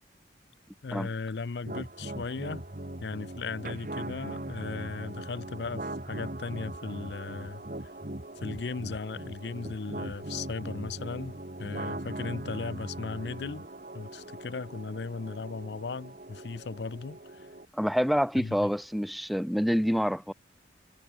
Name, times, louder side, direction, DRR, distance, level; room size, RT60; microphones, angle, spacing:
voice 1, 0.8-2.6 3.0-7.6 8.4-13.6 13.9-17.5 18.4-18.7, left 4 dB, 70° left, 0.6 m, -37 dB
sound 1, 1.6-17.6, right 1 dB, 50° right, 1.9 m, -40 dB
voice 2, 17.7-20.3, equal, ahead, 0.6 m, -27 dB
head